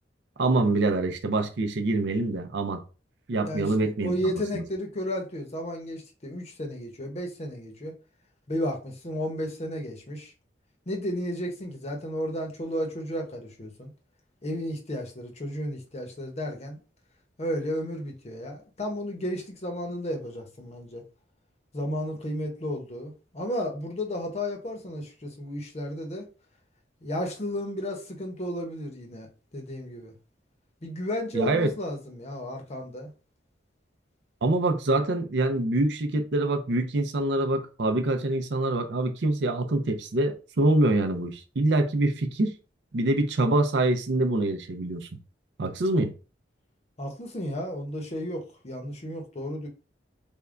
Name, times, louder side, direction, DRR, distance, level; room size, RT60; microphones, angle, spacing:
voice 1, 0.4-2.8 3.3-4.1 4.5-4.6 31.3-31.7 34.4-42.5 42.9-45.1 45.6-46.1, right 2 dB, 70° right, 0.5 m, -25 dB
voice 2, 4.0-8.0 8.5-10.3 10.9-13.9 14.4-16.8 17.4-21.0 21.7-26.3 27.0-30.1 30.8-33.1 47.0-49.7, equal, 35° left, 0.8 m, -33 dB
3.5 x 2.2 x 3.7 m
head